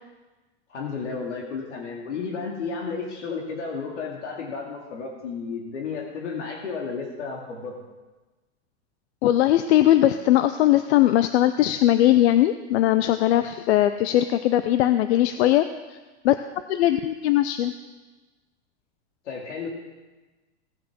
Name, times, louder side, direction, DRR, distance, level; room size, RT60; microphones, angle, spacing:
voice 1, 0.7-7.7 19.2-19.7, left 5 dB, 90° left, -1 dB, 2.5 m, -32 dB
voice 2, 9.2-16.0 16.2-16.4 16.7-17.7, left 13 dB, 65° left, 10 dB, 0.7 m, -20 dB
17.0 x 5.9 x 6.2 m, 1.2 s
supercardioid pair, 130°, 35 cm